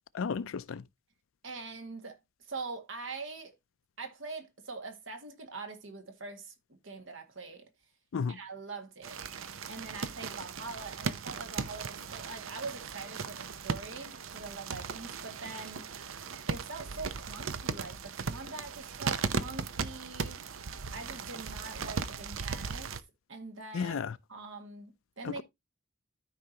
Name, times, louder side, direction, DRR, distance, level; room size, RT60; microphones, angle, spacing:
voice 1, 0.1-0.8 8.1-8.4 23.7-24.1 25.2-25.4, left 6 dB, 80° left, 0.4 m, -33 dB
voice 2, 1.4-3.5 4.0-7.7 8.3-15.9 16.5-20.4 20.9-22.9 23.3-24.0 24.3-25.4, right 3 dB, 70° right, 1.8 m, -43 dB
sound 1, 9.0-23.0, right 5 dB, 90° right, 0.7 m, -37 dB
13.5 x 4.8 x 2.8 m
head